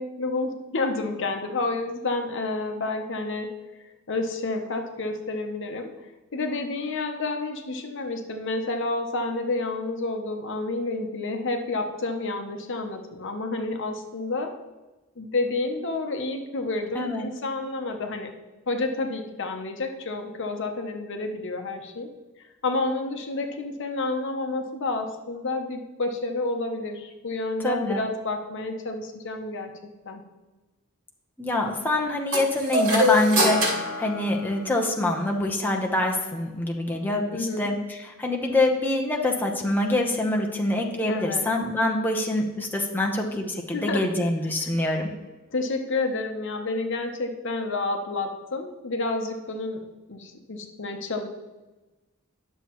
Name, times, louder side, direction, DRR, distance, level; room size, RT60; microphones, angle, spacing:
voice 1, 0.0-3.5 4.1-5.9 6.3-14.5 15.2-18.3 18.7-22.1 22.4-29.7 30.1-30.2 37.3-37.7 41.1-41.5 43.7-44.0 45.5-49.8 50.1-51.3, left 2 dB, 60° left, 5 dB, 0.9 m, -29 dB
voice 2, 27.6-28.0 31.4-45.1, left 1 dB, 10° left, 0 dB, 0.9 m, -25 dB
sound 1, 32.3-35.0, left 1 dB, 75° right, 2.6 m, -25 dB
10.5 x 7.0 x 3.1 m, 1.1 s
head